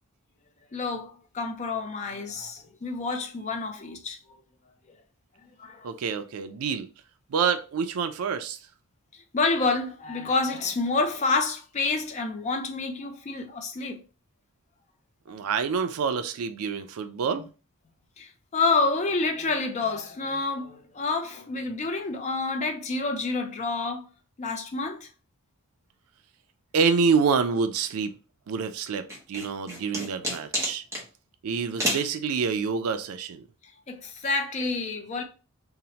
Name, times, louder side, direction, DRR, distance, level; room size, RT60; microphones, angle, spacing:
voice 1, 0.7-4.2 5.6-6.0 9.1-14.0 17.4-17.5 18.2-24.1 24.4-25.1 33.9-35.2, left 3 dB, 30° left, 0.4 m, -28 dB
voice 2, 5.8-6.9 7.3-8.6 15.3-17.4 26.7-28.1 28.5-29.0 29.3-30.8 31.4-33.4, right 5 dB, 75° right, 0.4 m, -27 dB
sound 1, 29.1-31.1 31.8-32.1, equal, 15° right, 0.6 m, -29 dB
2.8 x 2.1 x 2.8 m
head